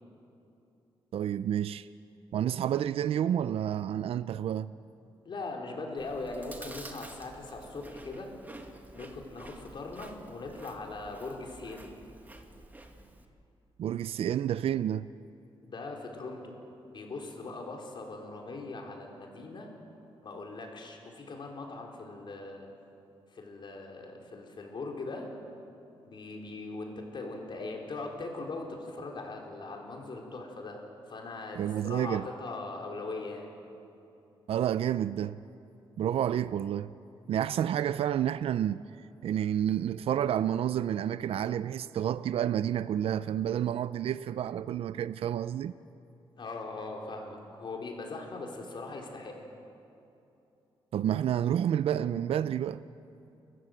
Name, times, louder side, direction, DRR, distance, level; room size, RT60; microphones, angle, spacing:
voice 1, 1.1-1.9 2.3-4.7 13.8-15.1 31.6-32.3 34.5-35.4 36.0-36.9 37.3-38.8 39.2-45.7 50.9-52.8, right 10 dB, 75° right, 0.5 m, -29 dB
voice 2, 5.2-8.3 8.9-12.0 15.6-16.5 16.9-19.7 20.2-22.7 23.3-25.3 26.0-30.8 31.1-33.5 46.4-49.3, left 3 dB, 55° left, 4.2 m, -40 dB
Chewing mastication, 6.0-13.3, right 2 dB, 20° right, 1.9 m, -50 dB
29.5 x 14.5 x 7.9 m
cardioid pair, 100°, 10 cm